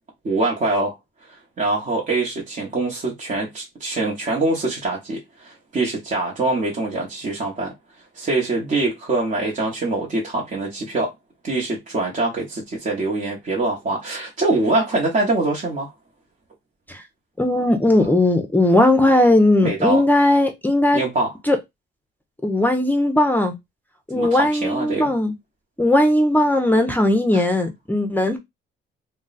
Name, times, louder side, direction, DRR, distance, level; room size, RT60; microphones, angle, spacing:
voice 1, 0.2-0.9 1.3-7.7 8.1-11.1 11.4-15.9 19.6-20.0 20.9-21.3 24.1-25.2 27.3-27.5, right 2 dB, 40° right, 1.0 m, -24 dB
voice 2, 17.4-21.0 21.5-21.6 22.4-23.5 24.1-25.3 25.8-28.4, left 1 dB, 10° left, 0.6 m, -18 dB
2.3 x 2.1 x 3.9 m
cardioid pair, 90°, 20 cm